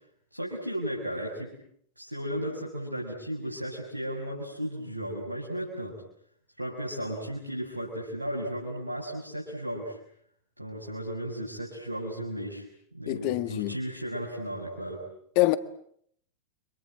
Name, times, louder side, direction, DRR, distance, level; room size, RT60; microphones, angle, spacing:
voice 1, 0.3-1.5 2.0-6.0 6.6-10.0 10.6-12.6 12.9-15.0, equal, 90° right, 6.2 m, -35 dB
voice 2, 13.1-13.8 15.4-15.6, left 19 dB, 45° left, 1.8 m, -25 dB
30.0 x 26.5 x 7.6 m
figure-of-eight pair, 90°, 0 cm